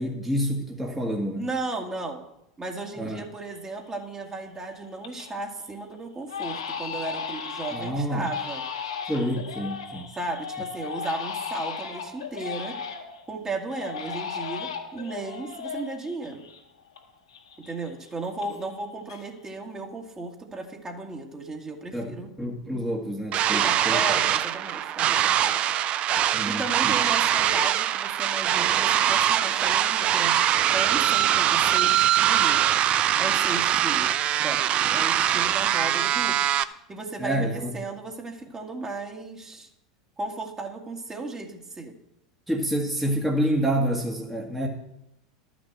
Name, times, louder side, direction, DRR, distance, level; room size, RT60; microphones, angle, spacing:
voice 1, 0.0-1.5 3.0-3.2 7.7-8.3 9.0-10.1 21.9-24.2 26.3-26.9 37.2-37.7 42.5-44.7, equal, 5° right, -2 dB, 1.7 m, -28 dB
voice 2, 1.4-2.2 2.6-8.6 10.1-12.8 13.3-16.4 17.7-22.3 23.5-25.6 26.5-30.3 30.7-32.6 33.2-34.1 34.4-34.6 34.9-36.4 36.9-39.7 40.2-41.9, right 2 dB, 20° right, 2 dB, 2.0 m, -35 dB
Crying sobbing, 3.1-3.2 3.7-4.1 4.5-5.4 5.7-5.8 6.3-13.2 13.7-17.0 17.3-18.8 19.1-19.6, left 6 dB, 80° left, 2.3 m, -36 dB
sound 1, 23.3-36.6, right 11 dB, 40° right, 0.6 m, -23 dB
12.0 x 6.2 x 7.8 m, 0.82 s
figure-of-eight pair, 85°, 3 cm